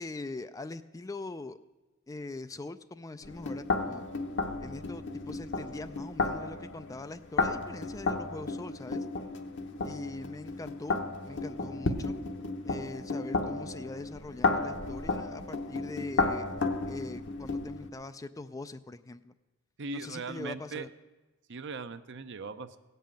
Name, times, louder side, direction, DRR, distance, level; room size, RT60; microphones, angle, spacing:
voice 1, 0.0-1.6 2.1-4.0 4.6-9.1 9.8-11.0 11.2-12.2 12.6-16.5 16.9-19.3 19.9-20.9, left 2 dB, 15° left, 12 dB, 0.3 m, -42 dB
sound 1, 3.2-17.9, left 3 dB, 55° left, 1.0 m, -33 dB
voice 2, 19.8-20.9 21.5-22.8, right 4 dB, 55° right, 11 dB, 0.7 m, -39 dB
16.5 x 5.5 x 8.9 m, 1.2 s
head